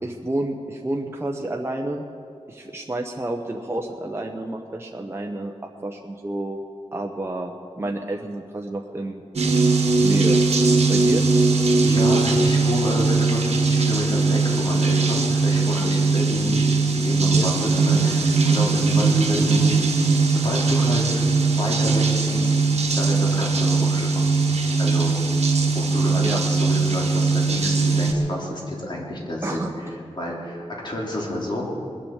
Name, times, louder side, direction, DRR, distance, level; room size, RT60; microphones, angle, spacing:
voice 1, 0.0-2.0 2.5-6.6 6.9-9.2 10.0-10.4 10.9-11.2 16.1-16.3 17.3-17.5 26.2-26.4 29.4-29.7, right 1 dB, 20° right, 1 dB, 0.9 m, -29 dB
sound 1, 9.4-28.1, right 3 dB, 70° right, 1.5 m, -20 dB
voice 2, 11.8-16.6 16.9-20.0 20.3-21.2 21.6-22.5 22.9-24.3 24.8-25.2 25.7-29.6 30.2-31.7, left 1 dB, 40° left, -3 dB, 3.2 m, -29 dB
21.0 x 7.5 x 7.1 m, 2.5 s
wide cardioid pair, 115°, 12 cm